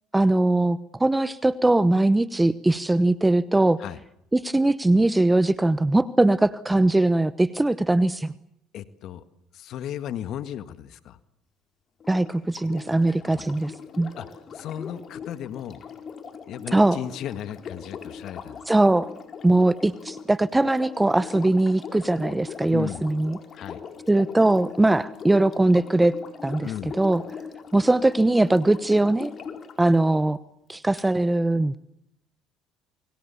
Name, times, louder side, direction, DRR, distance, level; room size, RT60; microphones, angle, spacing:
voice 1, 0.1-3.8 4.3-8.3 12.1-14.1 16.7-17.0 18.7-19.1 19.4-23.4 24.1-26.1 26.4-26.7 27.0-27.2 27.7-29.3 29.8-30.4 30.7-31.8, right 2 dB, 10° right, 16 dB, 1.0 m, -21 dB
voice 2, 8.7-9.3 9.5-11.2 13.3-13.5 14.2-14.3 14.5-15.8 16.5-18.6 22.7-23.0 23.5-23.8 26.6-26.9, left 10 dB, 65° left, 12 dB, 1.7 m, -35 dB
Sink (filling or washing), 12.0-29.8 31.0-31.1, left 6 dB, 45° left, 4.5 m, -41 dB
28.0 x 23.5 x 7.1 m, 0.77 s
supercardioid pair, 80°, 0 cm